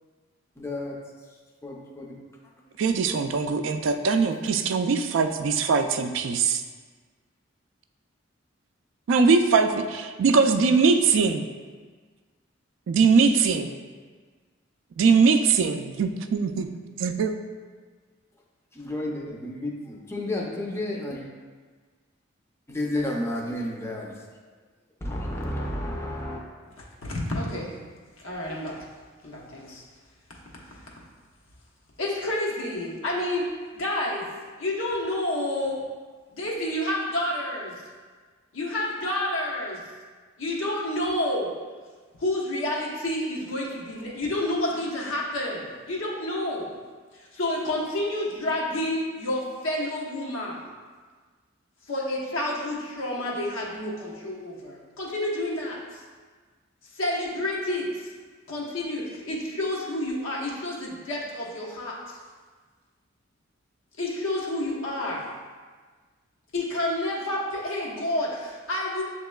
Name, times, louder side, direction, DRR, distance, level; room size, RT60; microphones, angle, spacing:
voice 1, 0.6-1.0 1.6-2.1 2.6-2.7 18.7-21.3 22.7-24.2 25.0-26.4, left 1 dB, 15° left, -2 dB, 0.5 m, -31 dB
voice 2, 2.8-6.6 9.1-11.4 12.9-13.7 15.0-16.7 17.0-17.3, right 5 dB, 65° right, 7 dB, 0.3 m, -21 dB
voice 3, 27.0-27.7 28.2-28.8 29.2-29.8 32.0-34.3 34.6-35.8 36.3-37.8 38.5-39.8 40.4-41.5 42.2-46.7 47.1-50.6 51.9-56.0 56.9-58.1 58.5-62.2 64.0-65.3 66.5-69.0, left 1 dB, 90° left, -3 dB, 1.0 m, -29 dB
7.2 x 2.9 x 2.3 m, 1.5 s
head